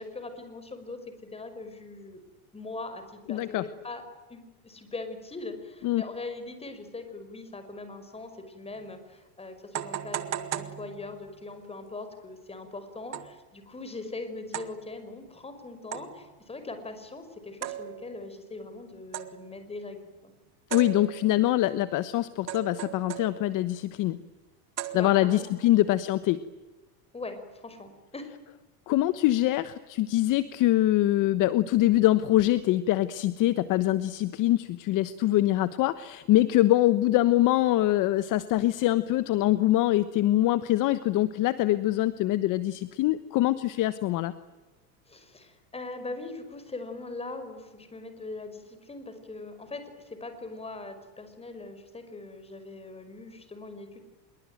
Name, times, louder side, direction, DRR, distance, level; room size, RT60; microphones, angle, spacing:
voice 1, 0.0-2.2 2.5-4.0 4.3-20.3 24.9-25.5 27.1-28.3 45.1-54.0, left 3 dB, 15° left, 9 dB, 5.5 m, -41 dB
voice 2, 3.3-3.6 5.8-6.0 20.7-24.2 24.9-26.4 28.9-44.3, left 15 dB, 40° left, 13 dB, 1.2 m, -24 dB
sound 1, 8.8-8.9 9.7-11.4 13.1-13.5 14.5-14.9 15.9-16.3 17.6-18.2 19.1-19.6 20.7-21.5 22.5-23.7 24.8-25.5, right 11 dB, 35° right, 1.9 m, -37 dB
26.5 x 22.5 x 9.2 m, 1.2 s
supercardioid pair, 130°, 46 cm